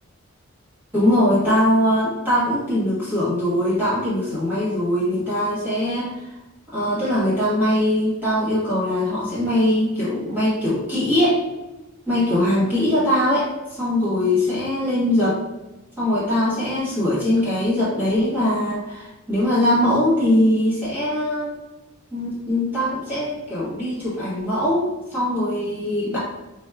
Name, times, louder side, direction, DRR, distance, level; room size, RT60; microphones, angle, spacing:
voice 1, 0.9-6.3 6.7-11.4 12.1-15.4 16.0-21.5 22.1-26.2, left 1 dB, 10° right, -9 dB, 1.1 m, -21 dB
4.4 x 2.1 x 2.3 m, 1.0 s
head